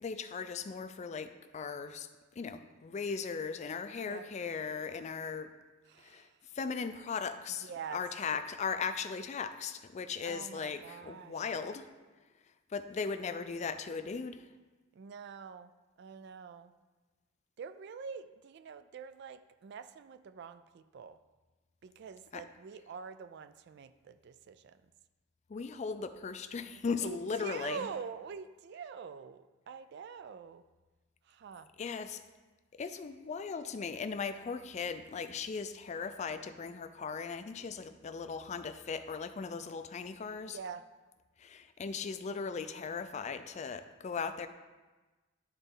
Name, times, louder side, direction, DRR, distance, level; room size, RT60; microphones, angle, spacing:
voice 1, 0.0-2.1 2.4-5.5 6.0-6.3 6.5-11.9 12.7-14.4 22.3-22.4 25.5-27.9 31.8-32.2 32.8-40.6 41.4-44.5, left 5 dB, 35° left, 10 dB, 0.3 m, -38 dB
voice 2, 5.9-6.4 7.5-8.0 10.2-11.4 14.9-15.7 16.0-16.7 17.6-21.2 21.8-24.8 27.0-30.6 31.2-31.7 40.5-40.8, right 6 dB, 60° right, 13 dB, 0.3 m, -45 dB
11.5 x 4.0 x 3.7 m, 1.2 s
head